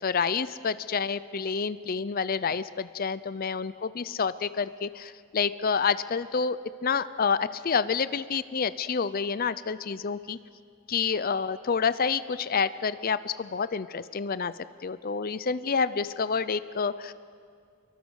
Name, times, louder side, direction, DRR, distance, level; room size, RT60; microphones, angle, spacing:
voice 1, 0.0-6.6 6.8-10.4 10.9-14.5 14.8-17.1, left 5 dB, 40° left, 15 dB, 0.5 m, -28 dB
29.5 x 23.0 x 6.4 m, 2.3 s
head